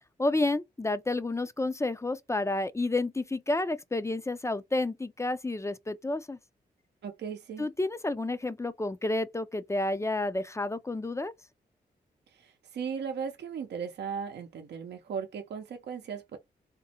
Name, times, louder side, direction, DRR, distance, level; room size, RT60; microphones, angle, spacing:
voice 1, 0.2-6.4 7.6-11.3, left 2 dB, 15° left, 0.4 m, -30 dB
voice 2, 7.0-7.7 12.3-16.4, right 6 dB, 80° right, 0.6 m, -37 dB
3.6 x 2.0 x 2.8 m
cardioid pair, 60°, 17 cm